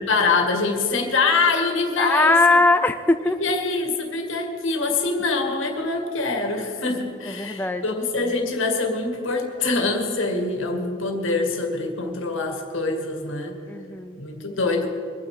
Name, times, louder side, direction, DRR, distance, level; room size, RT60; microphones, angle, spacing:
voice 1, 0.0-2.6 3.4-13.6 14.2-14.9, left 3 dB, 80° left, 3 dB, 2.0 m, -24 dB
voice 2, 2.0-3.4 7.4-7.8 13.7-14.2, left 2 dB, 10° left, 8 dB, 0.4 m, -20 dB
23.0 x 9.4 x 4.9 m, 2.5 s
head